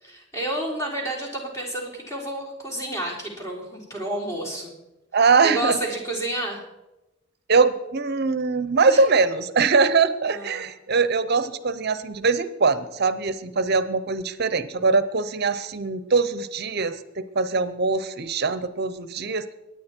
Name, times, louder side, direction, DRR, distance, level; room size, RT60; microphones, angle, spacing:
voice 1, 0.0-4.8 5.4-6.6 8.9-9.0 10.3-10.6, right 1 dB, 15° left, -1 dB, 3.8 m, -30 dB
voice 2, 5.1-5.8 7.5-19.5, right 4 dB, 55° right, 14 dB, 0.7 m, -22 dB
23.0 x 9.4 x 4.5 m, 0.98 s
head